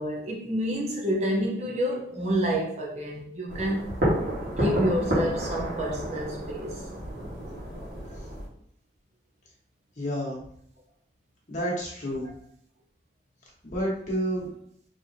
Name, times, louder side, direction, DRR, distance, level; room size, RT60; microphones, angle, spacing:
voice 1, 0.0-3.9 4.4-6.9, equal, 40° right, -1 dB, 0.7 m, -29 dB
sound 1, 3.5-8.5, right 1 dB, 60° right, 1.6 m, -30 dB
voice 2, 10.0-10.4 11.5-12.3 13.6-14.5, equal, 45° left, -4 dB, 1.2 m, -29 dB
4.1 x 3.2 x 2.7 m, 0.66 s
head